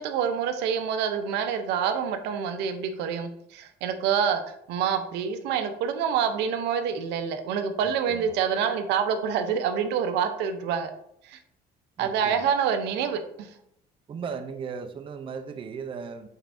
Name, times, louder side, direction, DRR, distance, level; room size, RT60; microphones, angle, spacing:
voice 1, 0.0-10.9 11.2-11.4 12.0-13.5, right 7 dB, 90° right, 8 dB, 0.5 m, -27 dB
voice 2, 7.8-8.3 12.0-12.5 14.1-16.3, right 6 dB, 30° right, 7 dB, 0.4 m, -37 dB
4.3 x 3.4 x 2.5 m, 0.73 s
cardioid pair, 110°, 17 cm